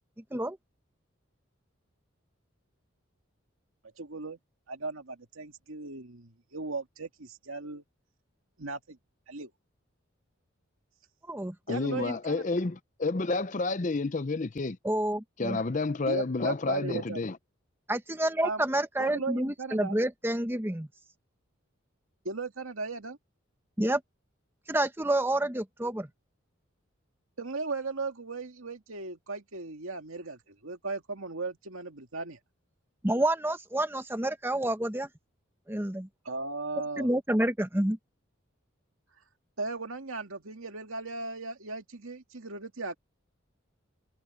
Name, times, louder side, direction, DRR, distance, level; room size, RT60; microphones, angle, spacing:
voice 1, 4.0-4.4 4.7-7.8 8.6-9.0 9.3-9.5 11.7-12.4 16.1-17.2 18.4-18.6 19.0-20.0 22.2-23.2 27.4-32.4 36.2-37.1 39.6-43.0, right 3 dB, 85° right, 2.2 m, -37 dB
voice 2, 11.7-14.8 15.4-17.4, left 3 dB, 35° left, 0.6 m, -30 dB
voice 3, 14.8-15.6 17.9-20.9 23.8-24.0 24.7-26.1 33.0-35.1 35.7-36.1 37.0-38.0, right 1 dB, 10° right, 1.0 m, -28 dB
head